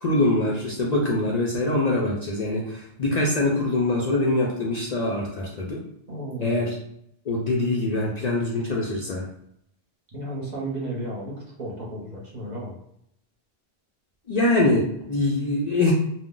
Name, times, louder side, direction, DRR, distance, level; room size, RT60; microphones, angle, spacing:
voice 1, 0.0-5.8 6.4-6.7 7.3-9.2 14.3-15.9, left 2 dB, 50° left, -3 dB, 0.5 m, -24 dB
voice 2, 6.1-6.7 10.1-12.7, right 1 dB, 45° right, -4 dB, 0.8 m, -33 dB
2.4 x 2.0 x 3.7 m, 0.74 s
omnidirectional pair, 1.1 m